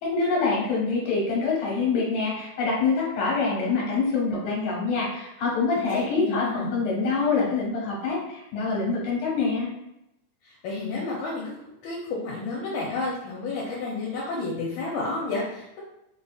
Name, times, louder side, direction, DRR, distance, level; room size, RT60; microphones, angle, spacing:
voice 1, 0.0-9.7, left 4 dB, 65° left, -4 dB, 2.2 m, -25 dB
voice 2, 5.8-6.7 10.4-15.8, left 3 dB, 80° left, -5 dB, 2.0 m, -31 dB
4.7 x 2.7 x 2.3 m, 0.86 s
omnidirectional pair, 3.4 m